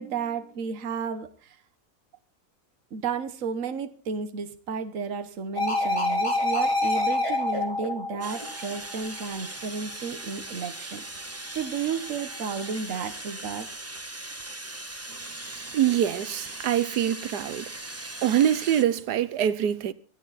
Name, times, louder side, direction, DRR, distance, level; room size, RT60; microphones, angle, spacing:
voice 1, 0.0-1.6 2.9-11.0 11.5-13.7, right 6 dB, 55° right, 1.5 m, -32 dB
sound 1, 5.6-9.1 12.6-12.7, left 2 dB, 20° left, 3.6 m, -27 dB
sound 2, 8.2-18.8, right 2 dB, 10° right, 0.9 m, -39 dB
voice 2, 15.7-17.6 18.2-19.9, right 10 dB, 85° right, 1.4 m, -24 dB
23.5 x 9.1 x 4.1 m
omnidirectional pair, 1.7 m